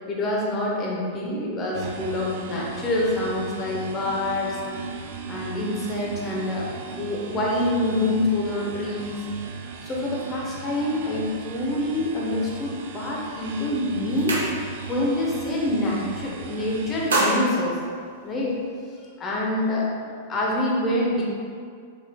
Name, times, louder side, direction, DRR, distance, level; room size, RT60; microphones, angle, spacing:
voice 1, 0.1-4.8 5.3-9.2 9.8-14.4 14.8-17.8 18.2-18.6 19.2-21.2, left 1 dB, 25° left, -4 dB, 1.0 m, -26 dB
sound 1, 1.7-17.1, right 6 dB, 50° right, 0.4 m, -37 dB
sound 2, 13.3-13.5 13.8-15.0 15.3-15.6 15.9-16.5 16.8-18.7, right 2 dB, 65° right, 0.8 m, -27 dB
5.0 x 4.3 x 2.2 m, 2.2 s
figure-of-eight pair, 95°, 0 cm